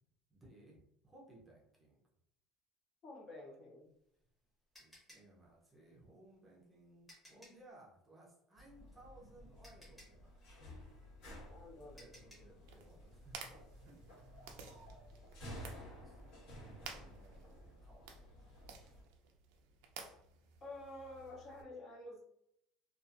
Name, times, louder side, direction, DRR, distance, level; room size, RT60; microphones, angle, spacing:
voice 1, 0.3-2.0 4.8-10.8 11.9-14.6 15.4-18.9, right 1 dB, 10° right, -3 dB, 0.6 m, -62 dB
voice 2, 3.0-3.8 11.5-12.1 20.6-22.2, left 2 dB, 30° left, -2 dB, 0.6 m, -50 dB
sound 1, 3.8-7.7 9.1-9.2 9.6-12.6, equal, 5° left, 1.0 m, -62 dB
sound 2, 8.6-19.0, equal, 60° left, 1.3 m, -54 dB
sound 3, 12.6-21.6, right 6 dB, 80° right, 0.4 m, -55 dB
2.7 x 2.4 x 2.4 m, 0.76 s
cardioid pair, 170°, 0 cm